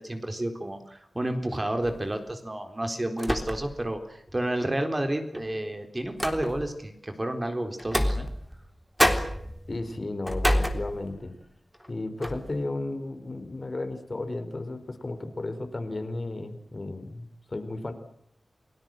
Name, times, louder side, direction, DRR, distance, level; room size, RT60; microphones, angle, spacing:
voice 1, 0.0-8.3, right 1 dB, 25° right, 6 dB, 4.0 m, -31 dB
sound 1, 1.8-2.1 3.2-3.9 4.3-4.4 5.3-6.8 7.8-8.7 9.0-11.3 11.7-11.9 12.2-12.6, equal, ahead, 3.6 m, -28 dB
voice 2, 9.7-11.3 11.9-17.9, left 2 dB, 40° left, 8 dB, 4.3 m, -34 dB
29.5 x 20.0 x 7.8 m, 0.68 s
wide cardioid pair, 85°, 0 cm